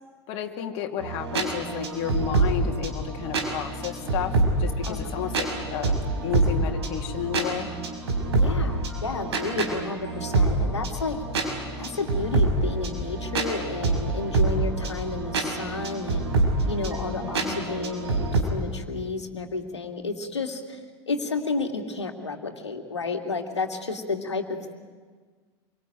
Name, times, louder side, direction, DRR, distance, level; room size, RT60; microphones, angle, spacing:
voice 1, 0.3-7.7 17.1-17.7 24.1-24.2, left 10 dB, 50° left, 3 dB, 2.6 m, -32 dB
sound 1, 1.0-18.4, right 3 dB, 70° right, 5.1 m, -26 dB
voice 2, 8.3-11.2 11.8-16.3 16.7-24.8, left 3 dB, 80° left, 5 dB, 2.6 m, -31 dB
27.0 x 23.5 x 9.3 m, 1.5 s
figure-of-eight pair, 80°, 14 cm